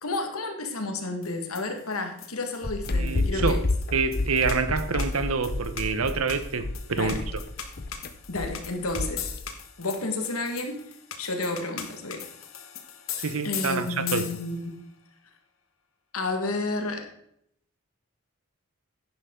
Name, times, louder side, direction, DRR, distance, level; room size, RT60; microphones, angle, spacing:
voice 1, 0.0-3.6 7.0-7.2 8.3-9.3 9.8-10.8 11.2-12.2 13.4-14.8 16.1-17.1, left 2 dB, 90° left, 5 dB, 1.8 m, -31 dB
sound 1, 1.2-14.7, left 9 dB, 70° left, 1.3 m, -40 dB
sound 2, 2.6-9.5, left 2 dB, 45° left, 0.8 m, -29 dB
voice 2, 2.9-3.6 3.9-7.4 13.2-14.3, right 4 dB, 85° right, 11 dB, 1.0 m, -27 dB
10.5 x 10.5 x 3.8 m, 0.71 s
head